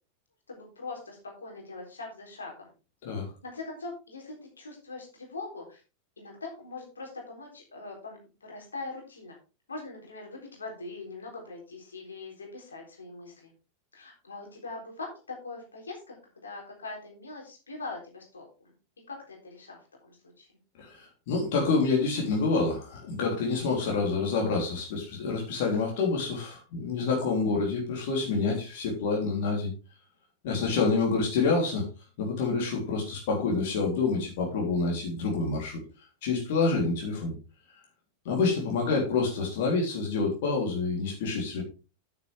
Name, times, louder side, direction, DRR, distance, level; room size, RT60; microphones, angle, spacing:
voice 1, 0.5-2.7 3.4-5.8 6.2-9.4 9.7-13.5 13.9-16.2 16.4-18.7 19.1-20.5, left 3 dB, 75° left, 0 dB, 3.9 m, -42 dB
voice 2, 20.8-29.7 30.4-31.9 32.2-35.8 36.2-37.4 38.3-41.6, left 4 dB, 50° left, -1 dB, 3.5 m, -27 dB
9.8 x 9.2 x 3.5 m, 0.32 s
figure-of-eight pair, 90°, 0 cm